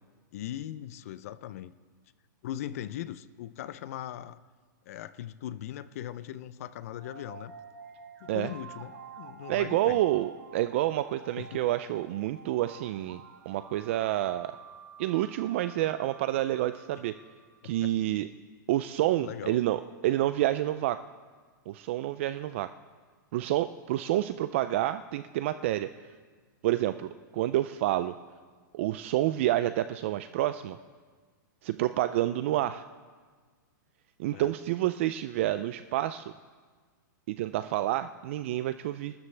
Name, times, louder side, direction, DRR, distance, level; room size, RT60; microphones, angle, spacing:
voice 1, 0.3-1.7 2.4-4.4 4.9-7.5 8.2-10.0 11.4-11.6 17.6-17.9 19.2-19.6 34.3-34.5, left 12 dB, 45° left, 16 dB, 0.5 m, -39 dB
sound 1, 6.9-17.8, right 6 dB, 75° right, 3.1 m, -50 dB
voice 2, 9.5-14.5 15.0-17.2 17.6-18.3 18.7-21.0 21.7-22.7 23.3-25.9 26.6-28.1 28.7-30.8 31.6-32.8 34.2-36.2 37.3-39.1, right 14 dB, 35° right, 12 dB, 0.3 m, -28 dB
27.0 x 13.0 x 3.3 m, 1.5 s
supercardioid pair, 170°, 11 cm